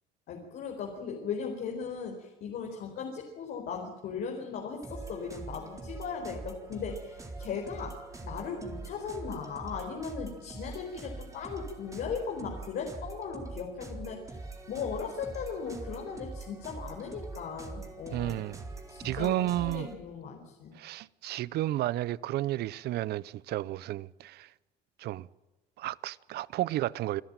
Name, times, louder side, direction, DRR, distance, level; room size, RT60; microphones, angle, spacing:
voice 1, 0.3-14.4 14.7-18.4 18.9-20.7, left 6 dB, 70° left, 4.6 m, -38 dB
sound 1, 4.8-19.9, right 3 dB, 20° right, 4.0 m, -43 dB
voice 2, 18.1-18.6 19.0-19.9 20.7-24.5 25.0-25.3 25.8-27.2, right 15 dB, 75° right, 0.7 m, -32 dB
27.0 x 13.0 x 9.1 m
cardioid pair, 110°, 17 cm